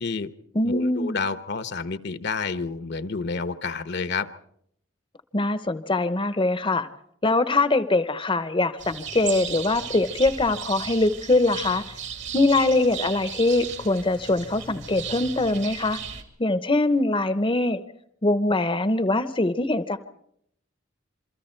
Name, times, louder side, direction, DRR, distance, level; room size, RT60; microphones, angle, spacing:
voice 1, 0.0-0.3 0.6-4.3, left 4 dB, 60° left, 12 dB, 0.9 m, -29 dB
voice 2, 0.5-1.2 5.3-6.9 7.2-11.8 12.3-16.0 16.4-17.8 18.2-20.0, left 2 dB, 25° left, 12 dB, 0.8 m, -23 dB
sound 1, 8.8-16.2, right 7 dB, 65° right, 2.5 m, -36 dB
28.0 x 23.5 x 4.5 m, 0.71 s
head